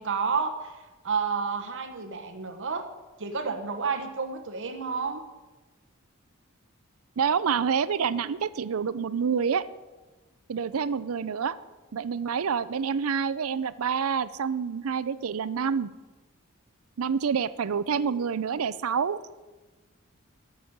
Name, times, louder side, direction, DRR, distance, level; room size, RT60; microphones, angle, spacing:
voice 1, 0.0-2.8 3.2-5.2, right 5 dB, 60° right, 5 dB, 1.1 m, -30 dB
voice 2, 7.2-9.7 10.5-11.6 11.9-15.9 17.0-19.2, right 6 dB, 80° right, 16 dB, 0.5 m, -27 dB
13.5 x 6.2 x 8.7 m, 1.2 s
head